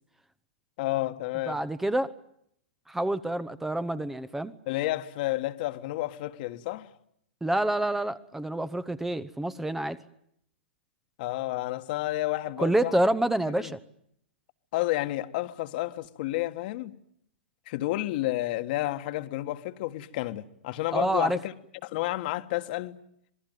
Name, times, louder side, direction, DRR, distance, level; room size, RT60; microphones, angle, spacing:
voice 1, 0.8-1.6 4.7-6.9 11.2-13.0 13.5-13.7 14.7-17.0 17.7-21.5 21.8-23.0, left 16 dB, 50° left, 1.6 m, -31 dB
voice 2, 1.5-2.1 2.9-4.5 7.4-10.0 12.6-13.8 20.9-21.4, right 1 dB, 5° right, 0.9 m, -27 dB
26.5 x 19.0 x 9.3 m
hypercardioid pair, 115°, 6 cm